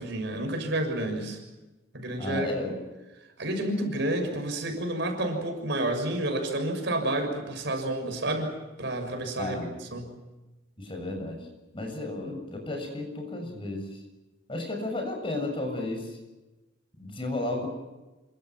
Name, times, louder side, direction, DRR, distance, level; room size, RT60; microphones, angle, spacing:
voice 1, 0.0-1.4 1.9-2.5 3.4-10.1, right 1 dB, 60° right, 4 dB, 6.6 m, -30 dB
voice 2, 2.2-2.7 9.4-9.8 10.8-11.5 11.7-13.9 14.5-16.2 17.0-17.7, left 2 dB, 25° left, 4 dB, 7.1 m, -33 dB
28.5 x 25.0 x 6.0 m, 1.1 s
head